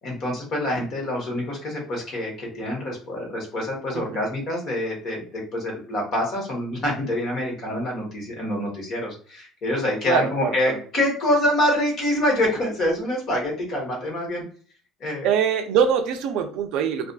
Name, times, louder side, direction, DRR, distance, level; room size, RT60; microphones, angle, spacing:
voice 1, 0.0-14.4 15.0-15.3, left 1 dB, 35° left, -1 dB, 1.0 m, -26 dB
voice 2, 3.9-4.3 10.1-10.8 15.2-17.1, right 8 dB, 60° right, 7 dB, 0.4 m, -23 dB
2.5 x 2.3 x 2.2 m, 0.43 s
cardioid pair, 170°, 0 cm